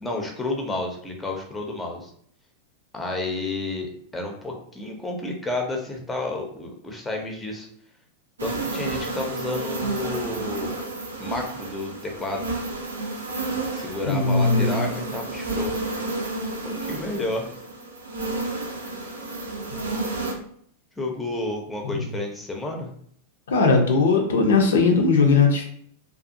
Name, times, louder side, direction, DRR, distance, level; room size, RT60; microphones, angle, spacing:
voice 1, 0.0-2.1 2.9-7.7 8.4-10.7 11.2-12.5 13.7-15.7 16.6-17.5 21.0-22.9, left 2 dB, 10° left, 2 dB, 0.5 m, -31 dB
sound 1, 8.4-20.3, right 2 dB, 75° right, 0.5 m, -31 dB
voice 2, 14.1-14.9 23.5-25.6, left 4 dB, 65° left, 2 dB, 0.4 m, -19 dB
2.5 x 2.3 x 2.5 m, 0.62 s
figure-of-eight pair, 90°, 0 cm